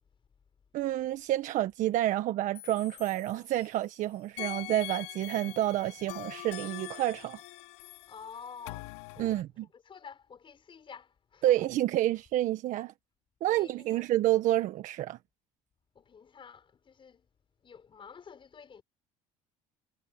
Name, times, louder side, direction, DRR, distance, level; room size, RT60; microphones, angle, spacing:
voice 1, 0.7-7.4 9.2-9.5 11.4-12.9 13.4-15.2, right 14 dB, 65° right, 1.5 m, -29 dB
sound 1, 2.5-3.9 4.4-9.4, left 22 dB, 85° left, 3.4 m, -44 dB
voice 2, 8.1-9.4 9.7-11.7 13.5-14.1 15.9-17.3 17.6-18.8, left 6 dB, 35° left, 6.3 m, -49 dB
supercardioid pair, 85°, 14 cm